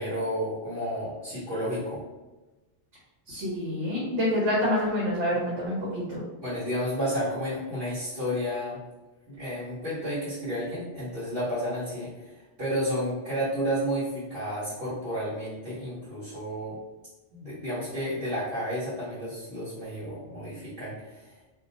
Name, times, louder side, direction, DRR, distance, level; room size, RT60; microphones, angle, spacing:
voice 1, 0.0-2.0 6.4-8.8 9.3-16.8 17.3-21.4, equal, 55° right, -11 dB, 1.2 m, -31 dB
voice 2, 3.3-6.3, left 1 dB, 75° right, -6 dB, 1.2 m, -27 dB
2.8 x 2.2 x 4.0 m, 1.1 s
omnidirectional pair, 1.2 m